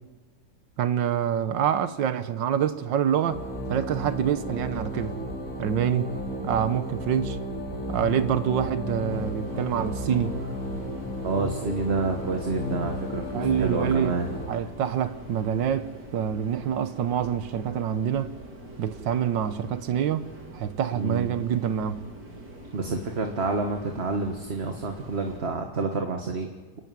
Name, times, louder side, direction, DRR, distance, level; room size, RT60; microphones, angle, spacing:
voice 1, 0.8-3.4 3.7-5.2 5.6-6.1 6.4-7.4 7.9-10.4 13.3-14.2 14.5-18.3 18.8-22.0, right 9 dB, 90° right, 1.7 m, -26 dB
sound 1, 3.2-14.5, left 1 dB, 45° left, 4.1 m, -33 dB
sound 2, 9.1-25.4, right 1 dB, 65° right, 3.9 m, -44 dB
voice 2, 11.2-14.4 20.9-21.4 22.7-26.5, right 3 dB, 35° right, 1.6 m, -29 dB
29.0 x 11.0 x 9.4 m
omnidirectional pair, 1.9 m